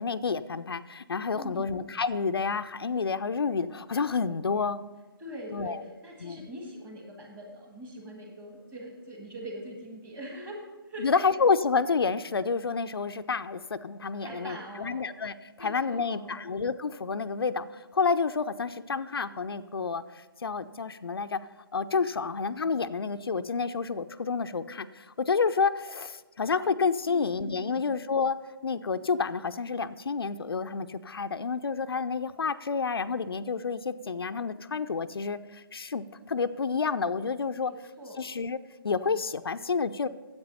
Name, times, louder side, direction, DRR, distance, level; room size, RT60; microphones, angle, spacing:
voice 1, 0.0-4.8 5.5-5.8 6.2-6.5 11.0-21.4 21.7-28.4 28.6-37.7 38.2-38.6 38.8-40.1, left 5 dB, 75° left, 10 dB, 0.5 m, -29 dB
voice 2, 1.3-1.8 5.2-11.2 14.2-15.1 15.6-16.4 27.1-27.9 37.6-38.3, equal, 15° right, 1 dB, 1.7 m, -42 dB
9.6 x 7.9 x 5.5 m, 1.2 s
figure-of-eight pair, 145°, 13 cm